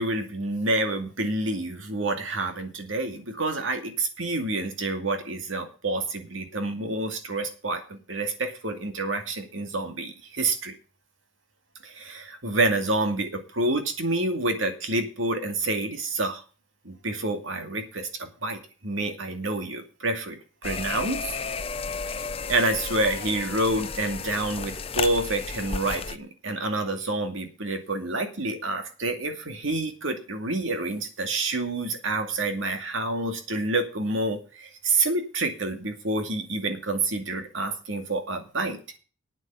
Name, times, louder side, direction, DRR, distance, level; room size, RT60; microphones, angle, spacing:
voice 1, 0.0-10.7 11.8-16.4 16.8-21.4 22.5-38.8, right 2 dB, 75° right, 6 dB, 2.3 m, -28 dB
sound 1, 20.6-26.2, left 5 dB, 30° left, 0.6 m, -33 dB
9.1 x 7.7 x 8.2 m, 0.36 s
head